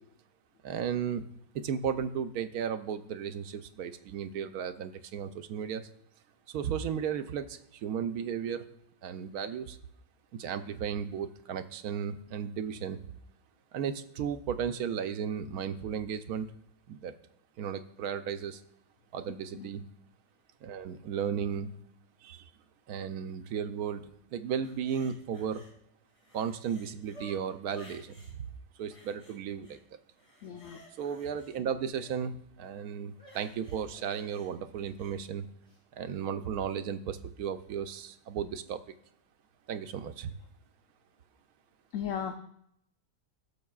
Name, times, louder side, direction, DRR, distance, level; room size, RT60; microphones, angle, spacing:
voice 1, 0.6-1.2 1.5-5.9 6.5-8.7 9.0-9.8 10.3-13.0 13.7-16.5 16.9-17.1 17.6-18.6 19.1-19.8 20.6-21.8 22.2-22.5 22.9-25.6 26.3-28.4 28.8-29.8 31.0-35.5 35.9-38.8 39.7-40.3, right 7 dB, 85° right, 9 dB, 1.1 m, -35 dB
sound 1, 24.6-25.7 26.1-28.3 28.9-29.8 30.1-32.2 33.1-35.2 35.7-35.8, left 1 dB, 25° left, 2.7 m, -55 dB
voice 2, 30.4-30.8 41.9-42.4, left 8 dB, 65° left, 6 dB, 0.9 m, -36 dB
17.5 x 6.6 x 2.4 m, 0.74 s
omnidirectional pair, 1.5 m